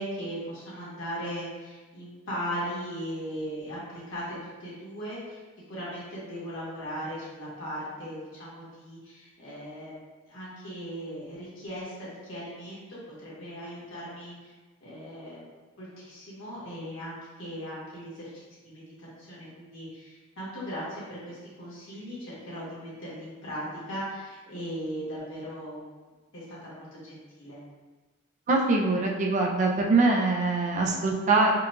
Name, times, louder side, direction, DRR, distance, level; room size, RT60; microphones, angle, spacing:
voice 1, 0.0-5.4 5.7-10.0 10.3-14.5 14.8-15.4 15.8-25.8 26.3-27.6, equal, 60° left, -8 dB, 1.4 m, -38 dB
voice 2, 28.5-31.5, right 3 dB, 35° right, 0 dB, 0.3 m, -23 dB
4.5 x 2.3 x 2.4 m, 1.3 s
head